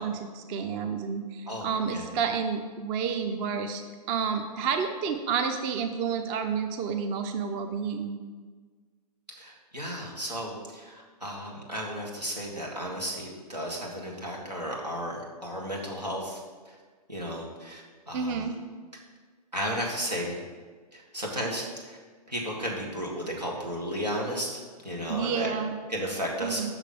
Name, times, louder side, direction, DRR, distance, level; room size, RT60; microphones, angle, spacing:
voice 1, 0.0-8.2 18.1-18.5 25.1-25.7 26.4-26.7, right 6 dB, 25° right, 6 dB, 0.5 m, -30 dB
voice 2, 1.5-2.2 9.4-16.4 16.7-16.8 17.1-18.5 19.5-20.4 20.9-22.0 22.3-24.6 24.8-25.5 25.9-26.7, equal, 90° right, -2 dB, 1.9 m, -34 dB
6.5 x 6.1 x 5.0 m, 1.5 s
figure-of-eight pair, 115°, 21 cm